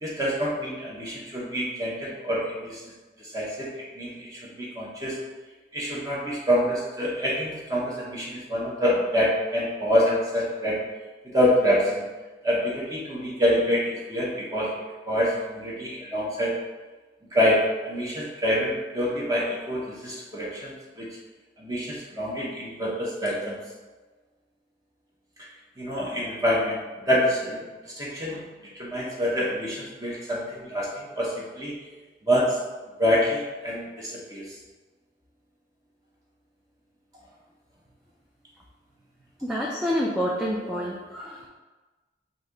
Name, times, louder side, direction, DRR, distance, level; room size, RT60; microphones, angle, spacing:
voice 1, 0.0-2.8 3.3-3.7 4.0-5.2 5.7-10.8 11.3-12.0 12.4-14.8 15.1-16.5 17.3-21.1 21.6-23.6 25.8-27.7 28.0-28.5 28.8-31.7 32.3-32.6 33.0-34.4, equal, 20° right, -5 dB, 0.8 m, -26 dB
voice 2, 39.4-41.5, equal, 5° right, -4 dB, 0.4 m, -28 dB
4.1 x 2.7 x 4.8 m, 1.2 s
head